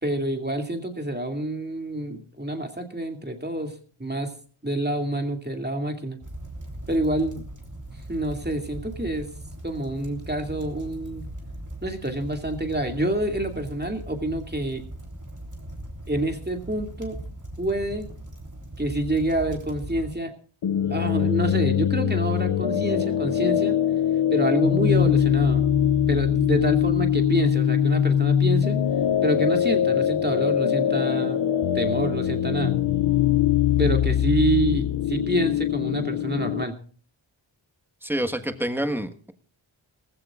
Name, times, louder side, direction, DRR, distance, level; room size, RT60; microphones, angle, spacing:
voice 1, 0.0-3.7 4.0-4.3 4.6-6.2 6.9-7.4 8.1-9.3 9.6-11.3 11.8-14.9 16.1-17.2 17.6-18.1 18.8-20.3 20.9-23.8 24.3-25.6 26.1-28.8 29.2-31.4 31.7-32.8 33.8-36.8, right 1 dB, 20° right, 4 dB, 2.4 m, -27 dB
sound 1, 6.2-20.1, right 1 dB, 35° right, 3.5 m, -39 dB
sound 2, 20.6-36.6, left 10 dB, 60° left, 0.6 m, -22 dB
voice 2, 38.0-39.3, equal, 5° right, 7 dB, 1.5 m, -27 dB
19.5 x 15.5 x 2.4 m, 0.41 s
wide cardioid pair, 75°, 50 cm